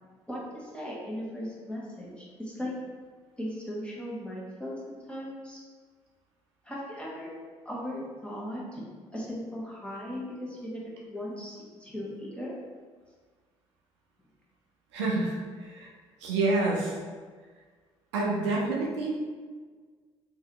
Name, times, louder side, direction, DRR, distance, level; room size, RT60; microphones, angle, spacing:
voice 1, 0.3-2.7 3.4-5.6 6.6-7.3 7.6-8.8 9.1-12.5, equal, 5° left, -5 dB, 1.1 m, -38 dB
voice 2, 14.9-15.9 16.2-17.0 18.1-19.1, right 2 dB, 85° right, -2 dB, 0.5 m, -28 dB
3.0 x 2.6 x 3.0 m, 1.5 s
hypercardioid pair, 50°, 14 cm